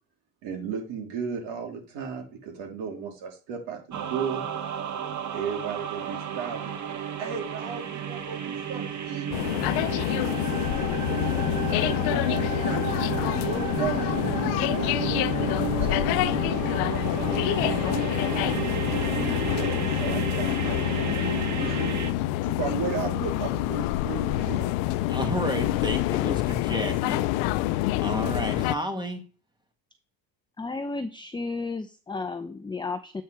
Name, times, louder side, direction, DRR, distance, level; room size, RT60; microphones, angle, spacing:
voice 1, 0.4-4.4 5.3-6.7 7.2-9.3 11.7-12.9 13.4-14.2 14.7-16.1 17.5-21.7 22.4-24.9 26.8-26.9, right 6 dB, 70° right, 2 dB, 3.0 m, -35 dB
sound 1, 3.9-22.1, right 8 dB, 40° right, 1.4 m, -32 dB
sound 2, 9.3-28.8, left 16 dB, 75° left, 0.6 m, -27 dB
voice 2, 25.1-27.2 27.8-29.2, right 1 dB, 10° right, 5 dB, 1.9 m, -31 dB
voice 3, 30.6-33.2, left 3 dB, 10° left, 9 dB, 0.6 m, -33 dB
8.3 x 4.5 x 4.7 m, 0.37 s
supercardioid pair, 95°, 46 cm